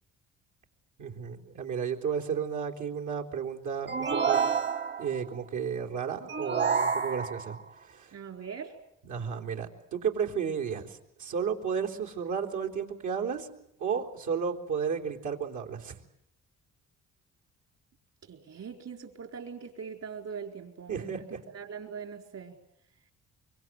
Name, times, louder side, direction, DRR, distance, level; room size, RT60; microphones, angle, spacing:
voice 1, 1.0-4.4 5.0-8.1 9.1-13.5 13.8-16.0 20.9-21.4, right 6 dB, 80° right, 1 dB, 3.7 m, -33 dB
sound 1, 3.9-5.2 6.3-7.6, right 6 dB, 40° right, 1.3 m, -28 dB
voice 2, 8.1-8.8 18.3-22.6, right 6 dB, 60° right, 5 dB, 4.6 m, -42 dB
25.0 x 24.5 x 9.2 m, 0.74 s
cardioid pair, 90°, 30 cm